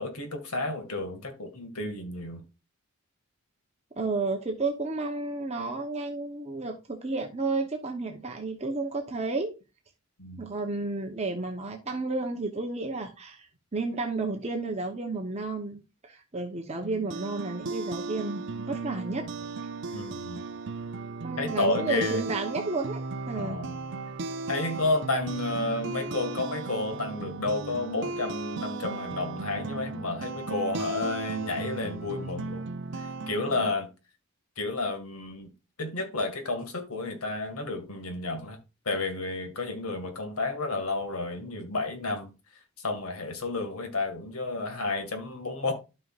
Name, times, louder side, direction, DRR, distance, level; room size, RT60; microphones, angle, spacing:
voice 1, 0.0-2.4 10.2-10.5 19.9-20.4 21.4-22.2 23.3-23.8 24.5-32.7 32.9-33.9 34.6-35.5 35.8-38.6 38.9-42.3 42.8-45.7, left 2 dB, 85° left, 2.0 m, -31 dB
voice 2, 4.0-9.5 10.4-19.3 19.9-20.1 21.2-23.0 23.3-23.6, right 3 dB, 30° right, 0.9 m, -32 dB
sound 1, 16.8-33.8, right 3 dB, 55° right, 0.6 m, -36 dB
12.5 x 5.4 x 2.5 m
head